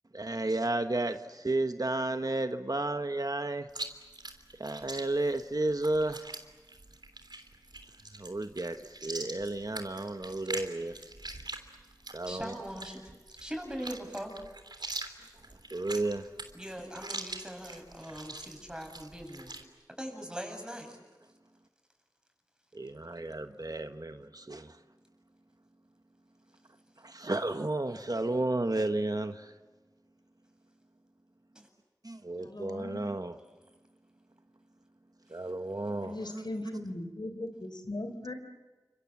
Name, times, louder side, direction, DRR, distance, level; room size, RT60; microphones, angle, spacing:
voice 1, 0.1-3.7 4.6-6.3 8.2-11.0 12.1-12.5 15.7-16.3 22.7-24.8 27.0-29.5 32.0-33.4 35.3-36.4, right 2 dB, 60° right, 1.3 m, -32 dB
Chewing mastication, 3.7-19.6, right 2 dB, 75° right, 3.3 m, -43 dB
voice 2, 12.3-13.0 13.4-14.3 16.5-19.5 20.0-21.0 31.5-31.7, equal, 10° right, 7.9 m, -41 dB
voice 3, 32.4-33.1 36.0-38.3, left 1 dB, 80° left, 3.7 m, -39 dB
30.0 x 26.5 x 7.5 m
wide cardioid pair, 45°, 7 cm